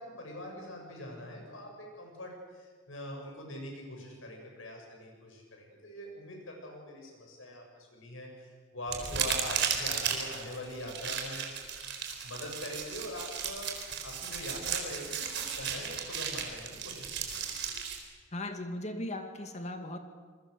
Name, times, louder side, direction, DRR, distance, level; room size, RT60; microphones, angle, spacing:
voice 1, 0.0-11.5 12.2-13.7 14.0-17.8, left 1 dB, 80° left, 1 dB, 7.6 m, -43 dB
sound 1, 8.9-18.0, right 7 dB, 60° right, 3.8 m, -35 dB
voice 2, 18.3-20.0, left 1 dB, 35° left, 6 dB, 2.3 m, -37 dB
27.5 x 22.0 x 6.8 m, 1.5 s
head